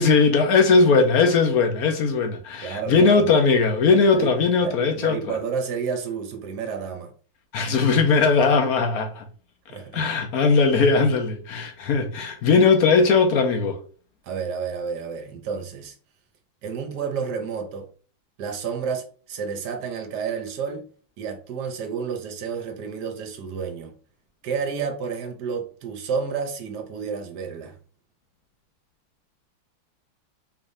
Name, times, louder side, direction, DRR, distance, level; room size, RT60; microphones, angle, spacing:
voice 1, 0.0-5.3 7.5-9.2 9.9-13.8, left 4 dB, 60° left, 1.1 m, -19 dB
voice 2, 2.6-3.3 4.1-4.3 4.6-7.1 9.7-10.0 14.2-15.9 16.6-17.9 18.4-20.8 21.2-23.9 24.4-27.7, right 6 dB, 65° right, 1.3 m, -30 dB
4.8 x 3.5 x 2.6 m
omnidirectional pair, 2.2 m